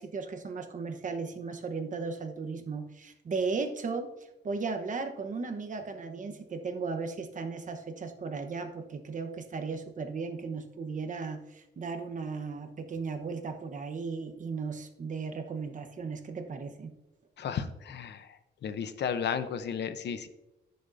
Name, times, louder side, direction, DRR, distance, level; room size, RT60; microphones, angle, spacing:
voice 1, 0.0-4.1 4.4-16.9, right 4 dB, 45° right, 6 dB, 1.0 m, -36 dB
voice 2, 17.4-18.3 18.6-20.3, left 7 dB, 70° left, 11 dB, 0.8 m, -33 dB
16.0 x 6.6 x 2.6 m, 0.96 s
cardioid pair, 115°, 18 cm